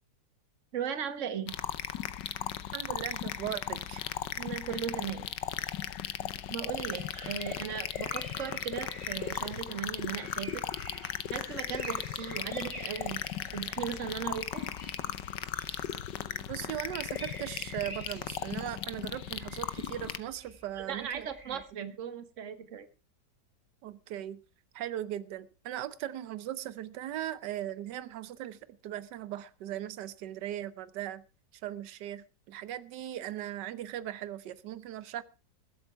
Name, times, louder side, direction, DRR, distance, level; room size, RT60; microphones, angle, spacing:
voice 1, 0.7-1.6 4.4-5.2 6.5-10.6 11.3-13.2 13.5-14.6 20.9-22.9, right 8 dB, 45° right, 1.6 m, -37 dB
sound 1, 1.5-20.2, left 11 dB, 85° left, 1.5 m, -37 dB
voice 2, 2.7-4.0 16.5-21.6 23.8-24.4 24.7-28.6 28.8-31.2 31.6-35.2, right 12 dB, 75° right, 1.4 m, -38 dB
sound 2, 6.7-21.6, right 1 dB, 20° right, 3.1 m, -49 dB
21.5 x 8.0 x 4.5 m
omnidirectional pair, 1.9 m